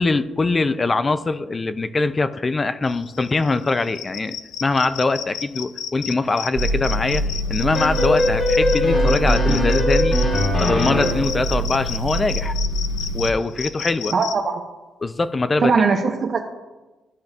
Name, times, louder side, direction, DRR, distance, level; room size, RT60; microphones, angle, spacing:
voice 1, 0.0-10.2 10.5-12.5 13.1-14.1 15.0-15.7, left 3 dB, 30° left, 12 dB, 0.4 m, -22 dB
sound 1, 2.9-14.3, left 9 dB, 90° left, 0.4 m, -32 dB
sound 2, 6.5-13.3, right 1 dB, 80° right, 1.5 m, -24 dB
sound 3, 7.7-11.4, left 2 dB, 50° left, 1.9 m, -21 dB
voice 2, 14.1-14.6 15.6-16.4, right 5 dB, 50° right, 2 dB, 0.6 m, -20 dB
12.5 x 5.2 x 2.4 m, 1.2 s
cardioid pair, 90°, 0 cm